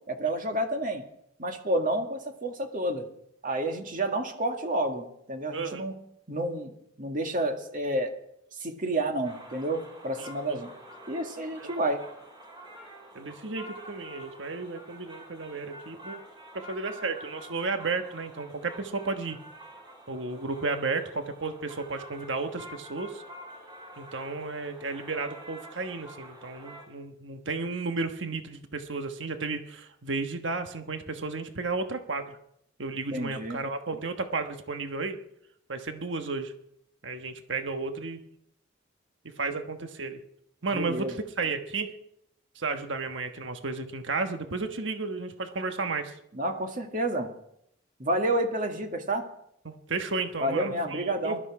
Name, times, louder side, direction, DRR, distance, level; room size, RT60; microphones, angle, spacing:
voice 1, 0.1-1.0 1.4-3.1 3.4-5.9 6.3-6.7 7.0-8.1 8.6-10.7 11.1-12.0 33.1-33.6 40.7-41.2 46.3-47.3 48.0-49.2 50.4-51.4, right 1 dB, 45° right, 4 dB, 1.9 m, -29 dB
voice 2, 5.5-5.9 10.2-10.6 11.6-11.7 13.1-16.2 16.5-19.4 20.1-23.2 24.0-32.4 32.8-35.2 35.7-36.5 37.0-38.2 39.4-40.2 40.6-41.1 41.4-41.9 42.5-46.1 49.6-51.4, right 3 dB, 70° right, 7 dB, 1.3 m, -33 dB
sound 1, 9.2-26.9, right 1 dB, 25° right, 3.6 m, -48 dB
20.5 x 12.5 x 4.9 m, 0.75 s
head